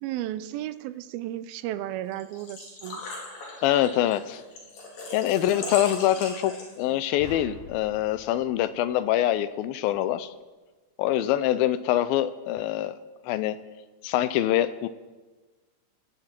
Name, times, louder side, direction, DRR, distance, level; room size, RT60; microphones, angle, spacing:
voice 1, 0.0-3.0, right 13 dB, 85° right, 14 dB, 2.5 m, -34 dB
Engine / Trickle dribble / Fill (with liquid), 2.1-7.0, left 2 dB, 70° left, 5.3 m, -39 dB
voice 2, 3.6-4.4 5.1-10.3 11.0-13.0 13.3-13.6 14.0-14.9, left 13 dB, 85° left, 14 dB, 2.5 m, -24 dB
sound 1, 7.2-9.6, left 3 dB, 50° left, 3.8 m, -46 dB
17.5 x 17.0 x 4.5 m, 1.3 s
omnidirectional pair, 4.2 m